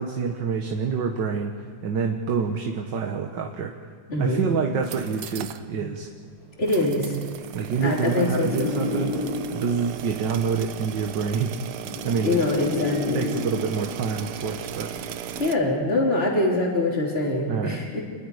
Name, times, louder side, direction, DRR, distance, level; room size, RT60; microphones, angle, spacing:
voice 1, 0.0-1.5 1.8-3.8 4.2-6.1 7.5-9.2 9.5-11.6 12.0-12.4 13.1-14.9 17.5-17.8, right 5 dB, 60° right, 3 dB, 1.8 m, -27 dB
voice 2, 4.1-4.5 5.8-5.9 6.6-7.2 7.8-8.8 12.2-13.2 15.4-18.0, left 2 dB, 30° left, -2 dB, 3.9 m, -24 dB
sound 1, 4.7-5.6 6.0-6.1 6.7-15.5, right 10 dB, 85° right, 1.7 m, -37 dB
sound 2, 6.8-9.8 10.8-13.8 14.8-15.1, left 3 dB, 70° left, 5.7 m, -32 dB
28.0 x 21.5 x 4.9 m, 2.1 s
omnidirectional pair, 2.3 m